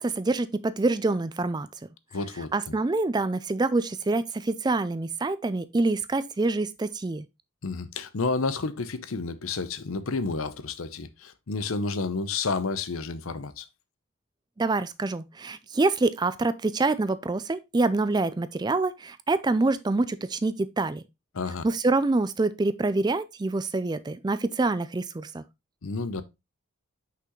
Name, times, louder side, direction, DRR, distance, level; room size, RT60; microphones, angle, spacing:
voice 1, 0.0-1.7 2.5-7.2 14.6-21.0 21.6-25.4, right 3 dB, 20° right, 0.3 m, -26 dB
voice 2, 2.1-2.7 7.6-13.6 21.3-21.6 25.8-26.2, left 4 dB, 75° left, 0.7 m, -30 dB
5.9 x 5.7 x 3.0 m
head